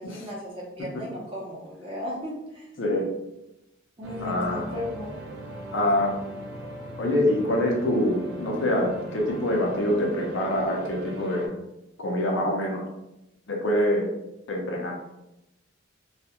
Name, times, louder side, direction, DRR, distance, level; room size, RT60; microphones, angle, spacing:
voice 1, 0.0-2.7 4.0-5.2, left 1 dB, 25° right, -4 dB, 0.7 m, -36 dB
sound 1, 4.0-11.5, right 1 dB, 80° right, 0.6 m, -38 dB
voice 2, 4.2-4.7 5.7-6.1 7.0-11.6 12.0-12.9 13.5-14.1 14.5-14.9, left 1 dB, 65° left, 0 dB, 0.5 m, -25 dB
2.3 x 2.1 x 2.8 m, 0.91 s
head